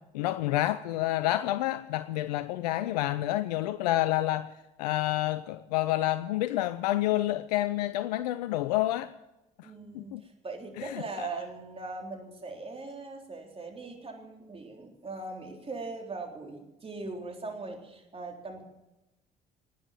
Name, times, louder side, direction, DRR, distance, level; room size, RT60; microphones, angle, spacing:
voice 1, 0.1-4.5 4.8-9.1 9.6-10.2 10.8-11.0, left 15 dB, 80° left, 0.4 m, -29 dB
voice 2, 9.6-18.6, right 3 dB, 30° right, 3.8 m, -40 dB
19.5 x 9.1 x 7.3 m
hypercardioid pair, 55°, 21 cm